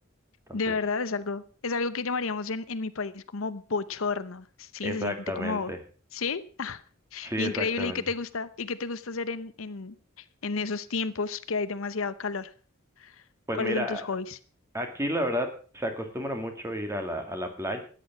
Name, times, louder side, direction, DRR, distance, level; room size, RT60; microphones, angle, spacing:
voice 1, 0.5-5.7 6.1-6.8 7.1-12.5 13.0-13.2 13.5-14.4, left 4 dB, 75° left, 14 dB, 0.8 m, -31 dB
voice 2, 4.8-5.8 7.2-8.0 13.5-14.0 14.7-17.8, equal, 15° right, 5 dB, 2.3 m, -32 dB
13.5 x 9.5 x 6.0 m, 0.41 s
head